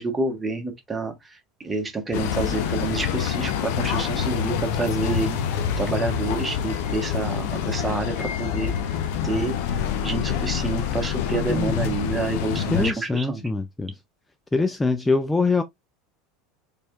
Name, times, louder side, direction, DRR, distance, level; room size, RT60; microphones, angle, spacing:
voice 1, 0.0-8.9 9.2-13.4, right 3 dB, 15° right, 1.3 m, -29 dB
sound 1, 2.1-12.9, left 8 dB, 60° left, 0.7 m, -26 dB
voice 2, 11.5-11.8 12.7-13.9 14.5-15.6, left 3 dB, 10° left, 0.4 m, -23 dB
4.2 x 3.3 x 2.4 m
figure-of-eight pair, 75°, 0 cm